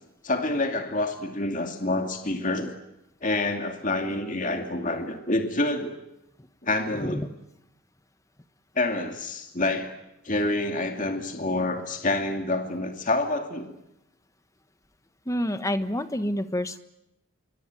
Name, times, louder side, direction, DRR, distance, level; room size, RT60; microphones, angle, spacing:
voice 1, 0.2-2.7 3.2-5.9 6.6-7.2 8.8-9.9 10.2-13.7, left 2 dB, 35° left, 5 dB, 2.5 m, -27 dB
voice 2, 15.3-16.8, equal, 15° left, 11 dB, 1.3 m, -28 dB
27.0 x 24.0 x 9.2 m, 0.88 s
head